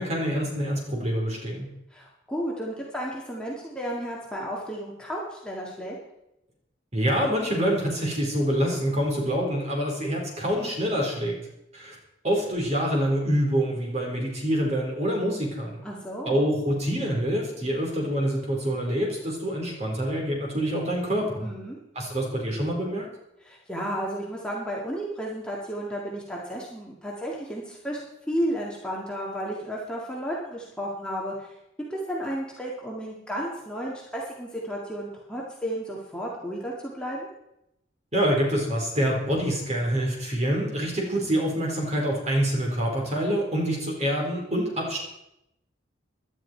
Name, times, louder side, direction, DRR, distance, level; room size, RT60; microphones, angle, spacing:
voice 1, 0.0-1.7 6.9-11.4 11.7-12.0 12.2-15.8 16.3-21.5 21.9-23.1 38.1-45.0, equal, 35° right, -1 dB, 4.3 m, -26 dB
voice 2, 1.9-5.9 15.8-16.5 21.4-21.8 23.4-28.0 28.3-31.5 31.9-37.3, equal, 5° left, -4 dB, 2.0 m, -33 dB
17.0 x 12.0 x 4.6 m, 0.85 s
head